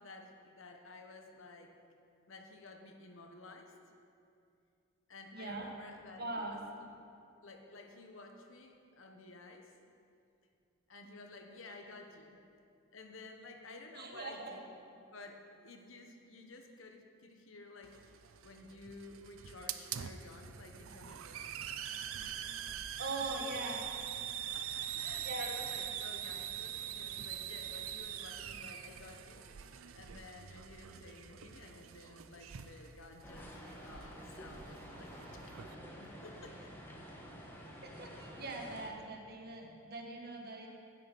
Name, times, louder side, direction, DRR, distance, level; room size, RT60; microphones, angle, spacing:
voice 1, 0.0-1.7 2.3-3.7 5.1-6.9 7.4-9.7 10.9-12.4 12.9-14.7 15.0-18.0 18.4-21.6 22.1-22.6 24.5-33.5 33.8-35.4 36.0-36.7, left 3 dB, 65° left, 4 dB, 1.2 m, -53 dB
voice 2, 5.3-5.7 6.2-6.6 13.9-14.5 23.0-23.8 25.2-25.5 37.8-40.7, right 2 dB, 50° right, 1 dB, 1.5 m, -41 dB
Hiss, 17.8-35.7, right 9 dB, 75° right, 0.5 m, -44 dB
sound 1, 33.2-38.9, equal, 10° left, 1.3 m, -50 dB
10.0 x 6.6 x 8.4 m, 2.5 s
head